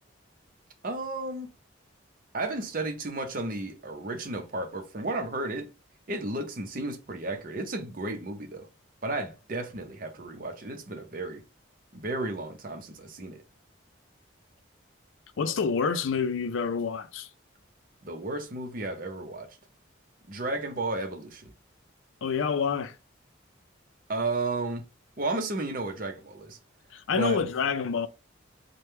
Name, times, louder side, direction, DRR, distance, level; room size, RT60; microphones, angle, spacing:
voice 1, 0.8-1.5 2.3-5.7 6.1-8.7 9.0-11.4 11.9-13.4 18.0-19.6 20.3-21.5 24.1-24.8 25.2-26.6 27.1-27.4, right 2 dB, 45° right, 0.7 m, -33 dB
voice 2, 15.4-17.3 22.2-23.0 26.9-28.1, left 5 dB, 80° left, 0.4 m, -27 dB
3.4 x 2.2 x 4.3 m
head